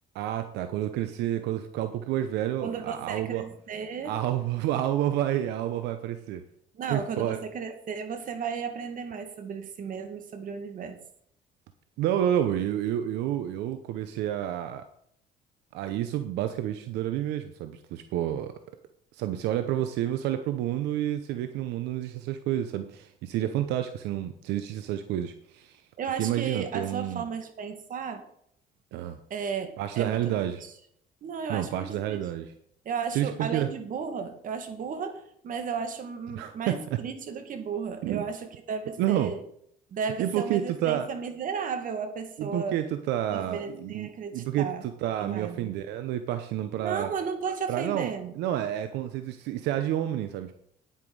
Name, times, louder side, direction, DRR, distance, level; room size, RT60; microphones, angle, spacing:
voice 1, 0.1-3.4 4.0-6.4 6.9-7.4 12.0-14.8 15.7-18.5 19.1-25.8 26.2-27.2 28.9-29.2 29.8-30.6 31.5-32.5 33.1-33.7 36.3-37.0 38.0-38.2 39.0-39.3 40.2-41.1 42.4-47.1 47.7-50.5, right 11 dB, 90° right, 9 dB, 0.8 m, -29 dB
voice 2, 2.6-4.1 6.7-11.0 26.0-28.2 29.3-30.2 30.5-30.7 31.2-32.2 32.9-39.4 39.9-42.8 43.3-44.9 45.2-45.8 46.8-48.4, right 6 dB, 55° right, 7 dB, 2.1 m, -34 dB
9.8 x 9.2 x 4.8 m, 0.68 s
cardioid pair, 110°, 17 cm